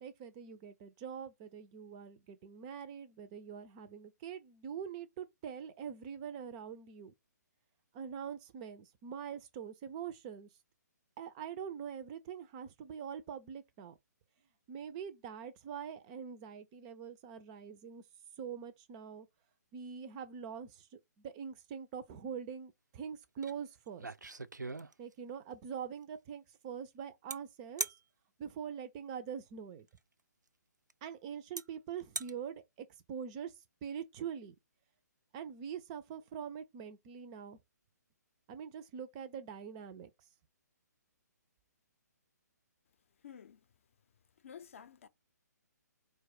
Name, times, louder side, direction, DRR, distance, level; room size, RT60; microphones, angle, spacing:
voice 1, 0.0-7.1 7.9-10.5 11.2-14.0 14.7-18.0 18.4-19.3 19.7-24.1 25.0-27.9 28.4-29.9 31.0-33.5 33.8-34.5 35.3-37.6 38.5-40.1, right 7 dB, 20° right, 0.4 m, -44 dB
sound 1, 23.4-23.5 23.9-25.3 27.3-27.4 27.8-28.0 29.9-30.0 30.9-31.0 31.6-31.7 32.0-32.3, right 3 dB, 80° right, 0.5 m, -39 dB
voice 2, 43.2-43.6 44.4-45.1, left 8 dB, 45° left, 0.6 m, -51 dB
4.5 x 2.2 x 4.7 m
figure-of-eight pair, 130°, 10 cm